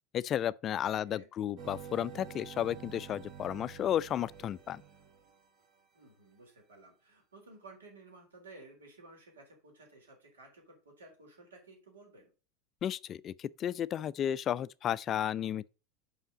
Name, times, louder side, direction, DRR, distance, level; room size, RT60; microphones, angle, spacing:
voice 1, 0.1-4.8 12.8-15.7, left 10 dB, 35° left, 0.3 m, -33 dB
voice 2, 0.8-1.3 5.9-12.3, right 3 dB, 80° right, 3.7 m, -55 dB
sound 1, 1.6-5.8, right 8 dB, 40° right, 1.7 m, -49 dB
5.6 x 5.6 x 5.0 m
figure-of-eight pair, 80°, 0 cm